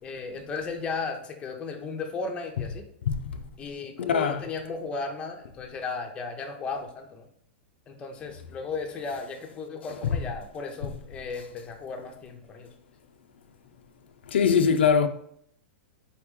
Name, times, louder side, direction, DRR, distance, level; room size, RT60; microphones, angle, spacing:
voice 1, 0.0-2.9 3.6-7.3 7.9-12.7, left 4 dB, 20° left, 0.6 m, -35 dB
voice 2, 4.1-4.4 14.3-15.1, left 6 dB, 85° left, 0.4 m, -21 dB
4.3 x 3.0 x 3.6 m
hypercardioid pair, 145°, 6 cm